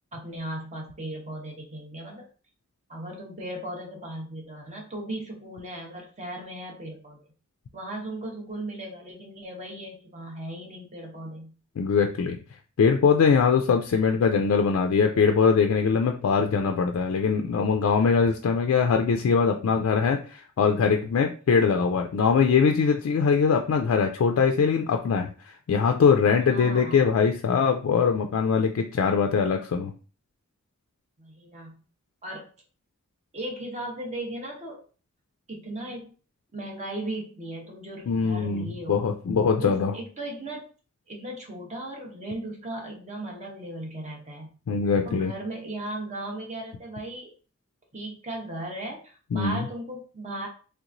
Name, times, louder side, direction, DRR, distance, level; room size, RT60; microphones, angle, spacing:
voice 1, 0.1-2.2 2.9-7.2 7.7-11.5 21.4-21.8 26.5-27.0 31.2-31.8 32.2-32.5 33.3-34.8 35.5-36.1 36.5-39.0 39.6-40.7 41.1-44.5 45.0-47.3 47.9-50.5, right 1 dB, 35° right, -1 dB, 1.0 m, -37 dB
voice 2, 11.8-12.4 12.8-25.3 25.7-29.9 38.1-39.9 44.7-45.3 49.3-49.7, left 5 dB, 85° left, 4 dB, 0.3 m, -22 dB
3.3 x 2.9 x 2.5 m, 0.37 s
head